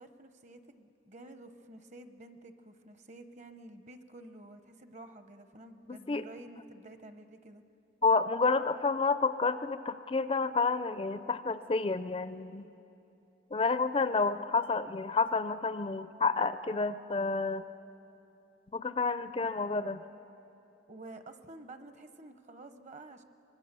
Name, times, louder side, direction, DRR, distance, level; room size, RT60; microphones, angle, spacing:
voice 1, 0.0-7.6 20.9-23.2, right 2 dB, 35° right, 9 dB, 1.0 m, -50 dB
voice 2, 5.9-6.2 8.0-12.7 13.5-17.6 18.7-20.0, left 4 dB, 30° left, 12 dB, 0.4 m, -30 dB
24.5 x 22.0 x 6.8 m, 2.9 s
head